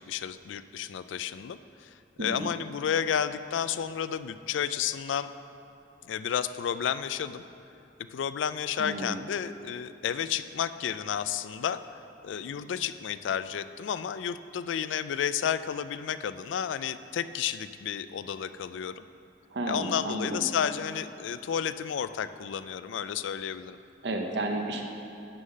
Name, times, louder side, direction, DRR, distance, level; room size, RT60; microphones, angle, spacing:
voice 1, 0.0-1.9 2.2-5.3 6.1-7.4 8.1-11.8 12.2-19.0 19.7-23.8, left 8 dB, 90° left, 13 dB, 0.3 m, -31 dB
voice 2, 2.2-2.5 8.8-9.2 19.5-20.5 24.0-24.9, right 2 dB, 65° right, 2 dB, 0.8 m, -32 dB
9.8 x 5.6 x 6.3 m, 2.8 s
head